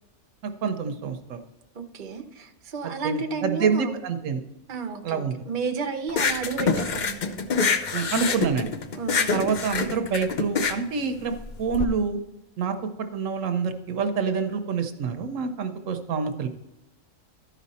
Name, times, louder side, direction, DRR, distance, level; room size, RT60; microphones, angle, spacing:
voice 1, 0.4-1.4 2.8-4.4 5.0-5.3 7.9-8.7 9.3-12.2 12.6-16.5, right 5 dB, 70° right, 7 dB, 1.0 m, -27 dB
voice 2, 1.8-4.0 4.7-7.3 8.9-9.5, right 5 dB, 45° right, 6 dB, 0.8 m, -32 dB
sound 1, 6.1-11.8, left 5 dB, 55° left, 0.5 m, -26 dB
13.0 x 5.1 x 4.1 m, 0.94 s
omnidirectional pair, 1.4 m